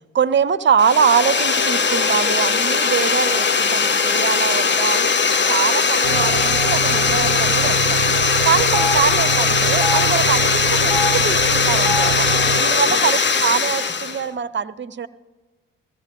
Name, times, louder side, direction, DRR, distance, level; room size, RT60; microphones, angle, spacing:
voice 1, 0.1-5.1 5.4-8.0 8.4-12.3 12.6-15.1, right 7 dB, 30° right, 15 dB, 0.7 m, -23 dB
sound 1, 0.8-14.2, left 5 dB, 30° left, 0.9 m, -19 dB
Telephone, 5.8-6.0 6.3-6.4 7.3-7.5 7.7-7.8 8.6-8.9 9.7-10.0 10.8-11.1 11.7-12.0 12.9-13.0 13.2-13.9, left 4 dB, 15° left, 5.0 m, -26 dB
sound 2, 6.0-12.6, right 11 dB, 85° right, 0.5 m, -27 dB
15.5 x 15.0 x 3.8 m, 1.2 s
hypercardioid pair, 40°, 37 cm